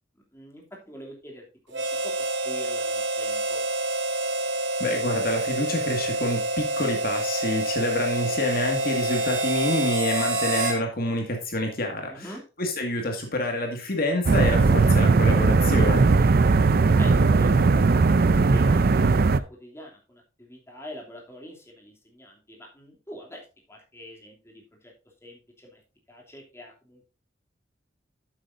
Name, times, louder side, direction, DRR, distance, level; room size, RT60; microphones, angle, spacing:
voice 1, 0.3-3.6 12.1-12.4 16.2-16.6 17.0-24.9 25.2-25.8 26.1-27.0, equal, 15° left, -1 dB, 2.8 m, -44 dB
Harmonica, 1.7-10.8, right 1 dB, 85° right, 3.5 m, -27 dB
voice 2, 4.8-12.3 12.6-16.0, left 1 dB, 55° left, 3 dB, 2.0 m, -27 dB
sound 1, 14.3-19.4, right 4 dB, 55° right, 0.5 m, -18 dB
11.5 x 8.1 x 2.6 m, 0.33 s
head